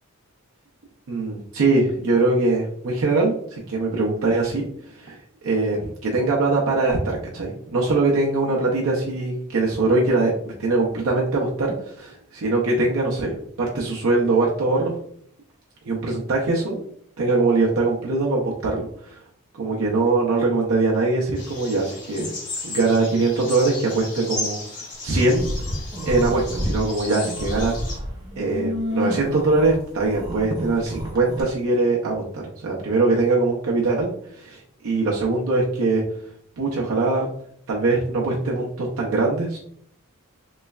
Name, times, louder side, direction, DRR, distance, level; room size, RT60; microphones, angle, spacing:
voice 1, 1.1-5.2 5.4-14.9 15.9-16.8 17.2-19.2 19.6-22.3 22.6-24.6 25.0-25.5 26.0-27.7 28.4-36.0 36.6-37.3 37.7-39.6, right 3 dB, 65° right, -3 dB, 0.5 m, -22 dB
sound 1, 21.3-28.0, left 2 dB, 35° left, 1.1 m, -35 dB
sound 2, 25.2-26.8 27.2-31.4, equal, 20° right, 0.7 m, -30 dB
3.1 x 3.1 x 2.3 m, 0.66 s
head